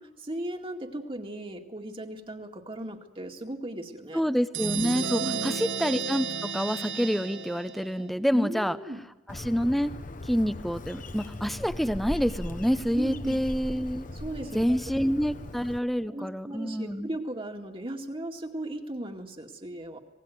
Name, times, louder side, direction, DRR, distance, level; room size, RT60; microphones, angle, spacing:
voice 1, 0.3-4.2 5.2-5.6 8.3-9.0 12.9-13.4 14.1-14.7 16.1-20.0, right 1 dB, 30° right, 3 dB, 2.1 m, -36 dB
voice 2, 4.1-8.8 9.3-9.9 10.3-14.1 14.5-17.1, equal, ahead, 12 dB, 0.8 m, -27 dB
sound 1, 4.5-8.1, right 6 dB, 90° right, 1.4 m, -33 dB
Bird, 9.3-15.8, left 1 dB, 45° left, 1.1 m, -39 dB
26.0 x 19.0 x 9.4 m, 1.1 s
head